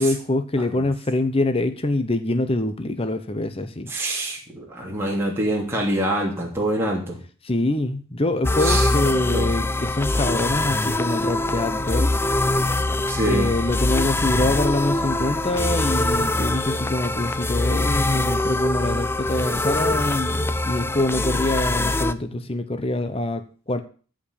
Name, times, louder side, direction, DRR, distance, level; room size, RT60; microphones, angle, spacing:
voice 1, 0.0-3.9 7.4-12.1 13.2-23.8, left 2 dB, 25° left, 9 dB, 0.9 m, -25 dB
voice 2, 3.9-7.2 8.6-9.5 13.1-13.5, right 1 dB, 10° right, -2 dB, 3.0 m, -25 dB
sound 1, 8.4-22.1, left 2 dB, 10° left, 0.5 m, -23 dB
14.0 x 5.2 x 8.6 m, 0.39 s
head